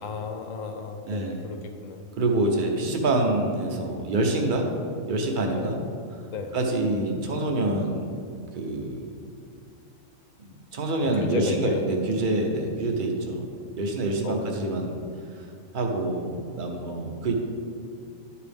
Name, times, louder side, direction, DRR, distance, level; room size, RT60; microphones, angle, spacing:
voice 1, 0.0-2.0 5.6-5.7 6.3-6.5 11.2-11.8 14.2-14.5, left 5 dB, 75° left, 5 dB, 1.1 m, -34 dB
voice 2, 1.1-1.5 2.2-4.7 5.1-5.8 6.5-8.0 8.5-9.1 10.4-13.5 13.8-14.9 15.3-15.5 15.7-17.3, right 2 dB, 45° right, 2 dB, 0.9 m, -26 dB
10.5 x 4.8 x 3.5 m, 2.4 s
omnidirectional pair, 1.4 m